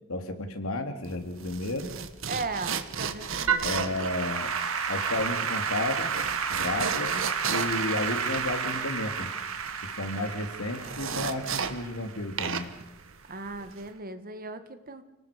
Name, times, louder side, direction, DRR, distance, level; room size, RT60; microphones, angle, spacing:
voice 1, 0.1-1.9 3.6-4.5 4.9-6.1 6.5-7.2 7.5-9.3 9.8-12.7, left 2 dB, 85° left, 6 dB, 3.0 m, -32 dB
sound 1, 1.0-12.1 12.4-13.9, right 6 dB, 65° right, 1.4 m, -35 dB
voice 2, 2.3-3.7 13.3-15.0, right 3 dB, 45° right, 9 dB, 1.7 m, -37 dB
Applause / Keyboard (musical), 3.5-12.8, right 6 dB, 85° right, 2.1 m, -31 dB
29.5 x 19.0 x 5.2 m, 0.94 s
head